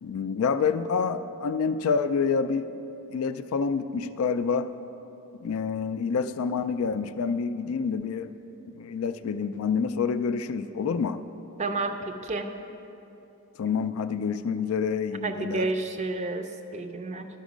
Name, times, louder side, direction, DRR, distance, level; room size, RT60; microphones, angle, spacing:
voice 1, 0.0-2.8 3.1-4.7 5.4-8.4 8.7-11.2 13.6-15.7, left 5 dB, 65° left, 11 dB, 0.3 m, -27 dB
voice 2, 11.6-12.5 15.2-17.3, right 3 dB, 30° right, 7 dB, 0.4 m, -31 dB
12.0 x 5.2 x 5.0 m, 2.9 s
head